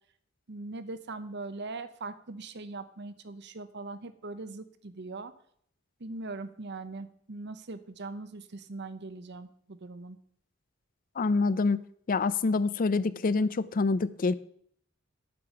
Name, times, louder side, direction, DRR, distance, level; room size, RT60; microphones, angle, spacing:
voice 1, 0.5-5.3 6.0-10.2, right 3 dB, 55° right, 0.9 m, -41 dB
voice 2, 11.2-11.8 12.1-14.3, left 3 dB, 45° left, 0.5 m, -26 dB
8.6 x 8.5 x 5.9 m
head